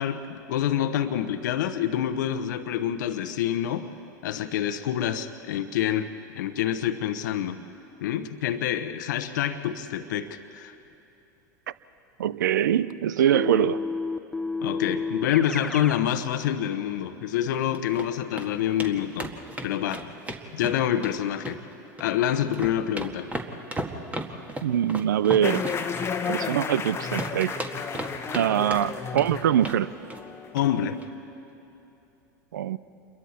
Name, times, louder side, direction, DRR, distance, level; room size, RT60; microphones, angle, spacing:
voice 1, 0.0-3.9 4.2-7.6 8.0-10.8 14.6-19.4 19.6-20.1 20.5-21.6 22.0-23.3 30.5-31.0, left 10 dB, 75° left, 8 dB, 0.9 m, -27 dB
voice 2, 12.2-13.8 24.6-25.6 26.3-27.5 28.3-29.9 32.5-32.8, right 10 dB, 85° right, 17 dB, 0.5 m, -23 dB
Keyboard (musical), 13.3-16.1, left 3 dB, 5° left, 0.5 m, -31 dB
sound 1, 17.5-18.1 18.4-18.5 18.8-18.9 19.2-21.1 21.4-22.1 22.4-26.9 27.2-28.4 28.7-29.3 29.6-29.8 30.1-30.3 30.6-30.7 31.0-31.1, right 1 dB, 15° right, 1.8 m, -35 dB
sound 2, 25.4-31.0, left 6 dB, 25° left, 1.2 m, -33 dB
28.5 x 22.5 x 4.3 m, 2.9 s
hypercardioid pair, 95°, 10 cm